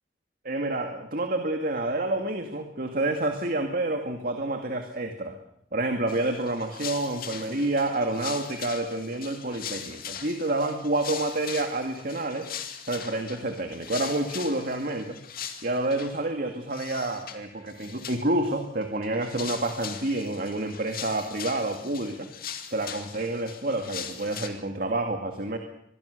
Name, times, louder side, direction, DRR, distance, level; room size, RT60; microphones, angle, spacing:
voice 1, 0.4-5.4 5.7-12.5 12.9-15.2 15.6-22.3 22.7-25.6, right 2 dB, 55° right, 5 dB, 2.3 m, -28 dB
sound 1, 6.1-16.2 16.7-17.4 17.7-18.5 18.8-24.5, left 8 dB, 55° left, 2.3 m, -40 dB
25.0 x 21.5 x 6.8 m, 0.74 s
head